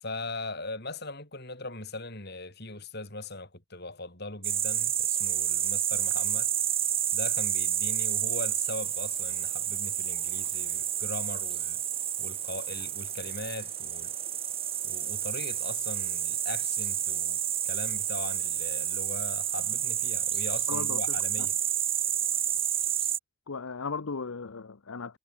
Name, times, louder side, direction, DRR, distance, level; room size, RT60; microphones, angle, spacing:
voice 1, 0.0-6.5 7.1-11.8 12.2-14.1 14.8-21.6, left 2 dB, 45° left, 4.6 m, -40 dB
sound 1, 4.4-23.2, right 10 dB, 25° right, 1.1 m, -30 dB
voice 2, 20.7-21.5 23.5-25.2, left 4 dB, 70° left, 0.8 m, -37 dB
head